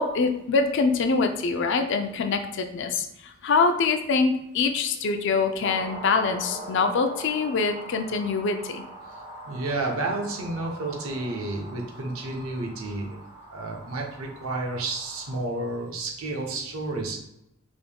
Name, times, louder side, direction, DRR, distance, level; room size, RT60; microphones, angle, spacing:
voice 1, 0.0-8.8, left 4 dB, 55° left, 7 dB, 0.4 m, -24 dB
sound 1, 5.6-15.4, right 1 dB, 20° right, 0.8 m, -42 dB
voice 2, 9.4-13.1 13.5-17.2, right 2 dB, 75° right, 1 dB, 0.8 m, -31 dB
5.1 x 3.6 x 2.2 m, 0.83 s
head